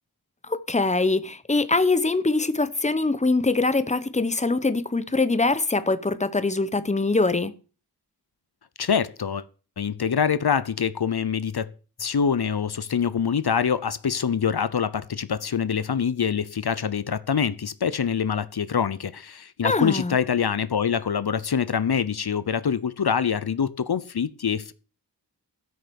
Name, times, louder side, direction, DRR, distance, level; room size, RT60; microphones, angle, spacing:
voice 1, 0.5-7.5 19.6-20.2, left 3 dB, 15° left, 0.9 m, -23 dB
voice 2, 8.8-9.4 9.8-11.7 12.0-24.7, left 7 dB, 70° left, 0.8 m, -25 dB
13.0 x 6.5 x 7.0 m
wide cardioid pair, 55°, 40 cm